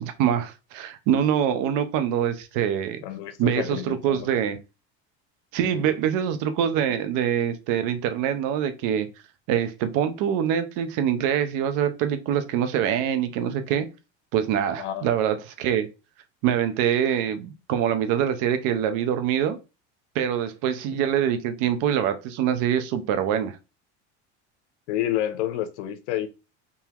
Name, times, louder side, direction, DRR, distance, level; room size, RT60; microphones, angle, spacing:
voice 1, 0.0-3.0 3.4-4.6 5.5-9.1 9.5-13.9 14.3-15.9 16.4-19.6 20.1-23.6, right 9 dB, 65° right, 0.8 m, -24 dB
voice 2, 3.0-4.3 5.6-5.9 14.8-15.1 24.9-26.3, left 12 dB, 85° left, 0.8 m, -29 dB
3.8 x 2.8 x 2.9 m
supercardioid pair, 115°, 34 cm